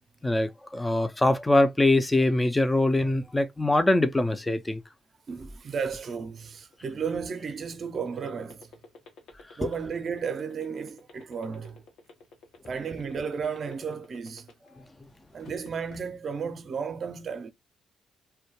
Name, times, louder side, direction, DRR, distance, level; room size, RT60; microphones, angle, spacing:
voice 1, 0.2-4.8 9.6-9.7, left 2 dB, 10° left, 0.3 m, -23 dB
voice 2, 5.3-8.7 9.6-11.8 12.7-14.5 15.3-17.5, right 6 dB, 50° right, 0.5 m, -33 dB
sound 1, 6.6-14.8 15.2-16.0, left 3 dB, 75° left, 0.8 m, -49 dB
2.3 x 2.2 x 2.8 m
cardioid pair, 90°, 0 cm